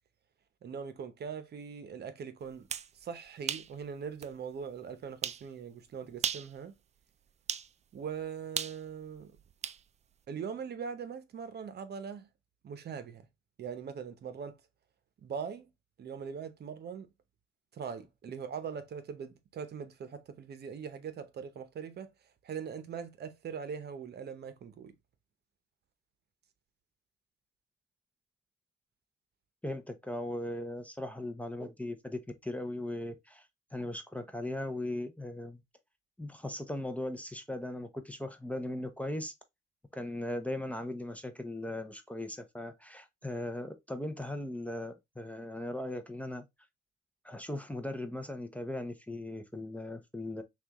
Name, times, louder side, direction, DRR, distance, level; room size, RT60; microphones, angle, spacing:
voice 1, 0.6-2.7 2.9-6.7 7.9-9.3 10.3-12.3 12.6-13.3 13.6-14.6 15.2-15.7 16.0-17.1 17.7-22.1 22.4-24.9, right 6 dB, 55° right, 0.8 m, -41 dB
sound 1, 2.5-2.9 3.5-3.7 4.2-4.3 5.2-5.4 6.1-6.5 7.5-7.7 8.6-9.8, right 8 dB, 35° right, 0.4 m, -35 dB
voice 2, 29.6-35.6 36.2-39.3 39.9-46.4 47.2-50.4, left 1 dB, 5° left, 0.7 m, -38 dB
5.9 x 2.4 x 2.9 m
cardioid pair, 90°, 20 cm